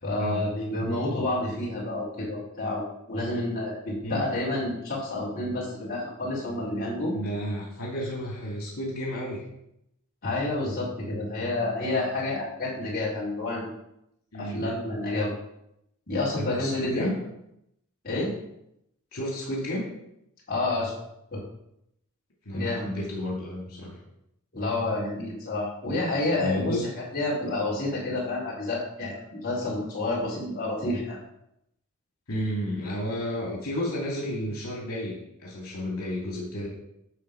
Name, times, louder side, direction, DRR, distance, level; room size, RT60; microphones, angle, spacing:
voice 1, 0.0-7.1 10.2-13.7 14.4-15.3 16.1-17.1 18.0-18.3 20.5-20.9 21.3-21.4 22.5-22.9 24.5-26.8 27.1-31.2, left 2 dB, 45° left, -7 dB, 4.4 m, -29 dB
voice 2, 7.1-9.4 14.3-14.6 16.4-17.2 19.1-19.9 22.5-24.0 26.4-26.8 32.3-36.7, equal, 85° left, -2 dB, 2.5 m, -31 dB
11.0 x 4.1 x 6.8 m, 0.79 s
head